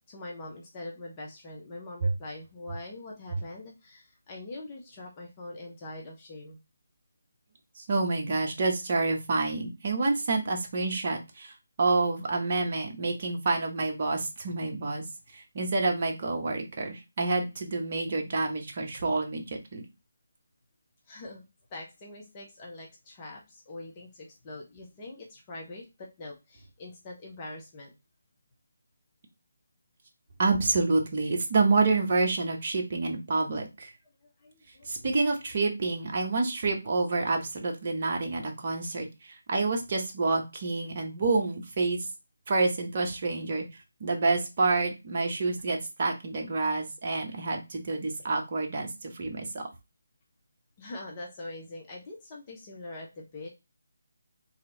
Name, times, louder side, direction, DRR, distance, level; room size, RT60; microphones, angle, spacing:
voice 1, 0.1-6.6 21.1-21.4 21.7-27.9 34.2-35.0 50.8-53.5, left 2 dB, 25° left, -2 dB, 0.9 m, -43 dB
voice 2, 7.8-15.0 15.3-19.8 30.4-33.9 34.8-42.0 42.5-43.6 44.0-49.6, right 3 dB, 40° right, 2 dB, 1.0 m, -28 dB
3.3 x 2.8 x 3.8 m, 0.25 s
figure-of-eight pair, 155°, 0 cm